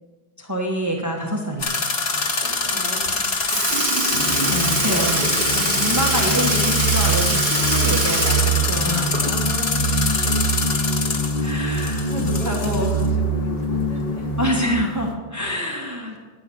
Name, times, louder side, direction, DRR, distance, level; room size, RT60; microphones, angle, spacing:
voice 1, 0.4-1.8 4.4-5.2 5.8-9.2 11.4-12.9 14.4-16.2, equal, 15° right, -1 dB, 1.4 m, -26 dB
sound 1, 1.6-13.1, left 3 dB, 90° left, 1.6 m, -25 dB
voice 2, 2.0-3.8 4.8-6.3 8.4-11.2 11.5-14.3 14.7-14.8 15.7-16.0, right 1 dB, 35° left, -4 dB, 3.2 m, -37 dB
Sink (filling or washing) / Liquid, 3.0-3.2 3.5-9.6 9.9-10.0 11.6-11.7 12.6-12.7 13.5-13.7 14.6-14.7, right 3 dB, 50° right, 1.6 m, -25 dB
sound 2, 4.1-14.8, right 2 dB, 65° left, 1.5 m, -24 dB
10.5 x 9.8 x 7.0 m, 1.3 s
omnidirectional pair, 1.0 m